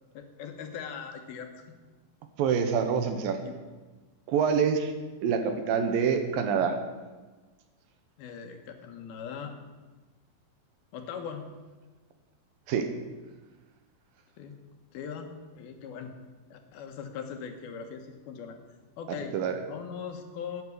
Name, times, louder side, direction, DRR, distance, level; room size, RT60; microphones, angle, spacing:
voice 1, 0.1-1.6 3.4-3.6 8.2-9.5 10.9-11.4 14.4-14.5 14.9-16.1 16.5-18.6 19.0-19.3 19.7-20.6, left 7 dB, 80° left, 5 dB, 3.2 m, -40 dB
voice 2, 2.4-3.4 4.3-4.9 5.2-6.8 12.7-12.9 19.3-19.6, right 6 dB, 75° right, 7 dB, 2.7 m, -26 dB
12.0 x 9.3 x 8.4 m, 1.3 s
omnidirectional pair, 4.4 m